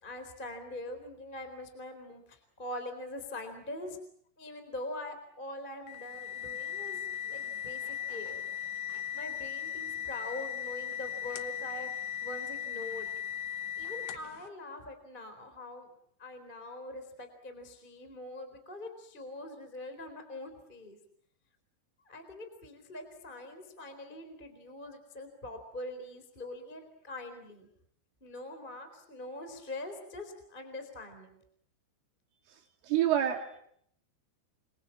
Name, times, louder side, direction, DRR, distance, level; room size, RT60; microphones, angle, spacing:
voice 1, 0.0-4.0 4.4-7.0 7.3-8.4 9.1-11.9 12.2-13.1 13.8-15.9 16.2-21.0 22.0-27.7 28.2-31.4, left 1 dB, 10° left, 7 dB, 3.4 m, -43 dB
sound 1, 5.9-14.4, left 9 dB, 65° left, 3.0 m, -38 dB
voice 2, 32.8-33.7, right 11 dB, 80° right, 2 dB, 4.8 m, -28 dB
29.5 x 23.5 x 7.4 m, 0.70 s
omnidirectional pair, 5.6 m